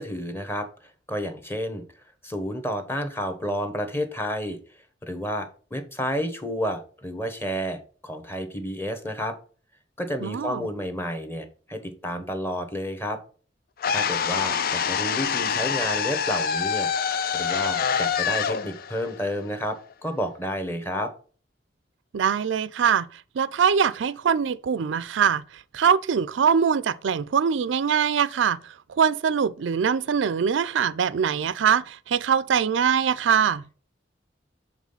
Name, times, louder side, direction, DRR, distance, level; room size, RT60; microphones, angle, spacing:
voice 1, 0.0-1.8 2.2-4.6 5.0-9.4 10.0-13.2 13.9-16.9 17.3-21.1, equal, 15° left, 1.2 m, -30 dB
voice 2, 10.2-10.7 22.1-25.4 25.7-28.6 28.9-33.6, right 7 dB, 90° right, 0.4 m, -23 dB
sound 1, 13.8-19.9, left 7 dB, 55° left, 0.5 m, -26 dB
7.3 x 3.9 x 5.5 m
head